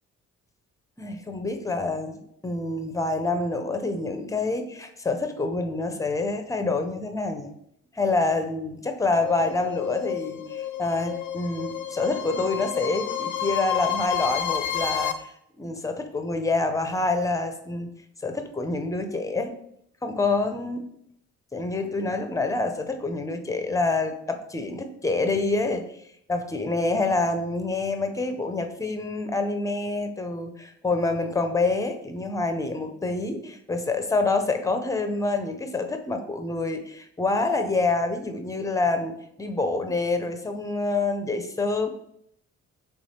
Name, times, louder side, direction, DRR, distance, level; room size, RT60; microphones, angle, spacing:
voice 1, 1.0-7.5 7.9-15.3 15.6-17.9 18.2-19.5 20.0-20.9 21.5-25.9 26.3-41.9, left 3 dB, 10° left, 7 dB, 0.5 m, -27 dB
sound 1, 9.1-15.1, left 10 dB, 90° left, 0.5 m, -30 dB
3.5 x 3.2 x 4.2 m, 0.72 s
cardioid pair, 90°, 30 cm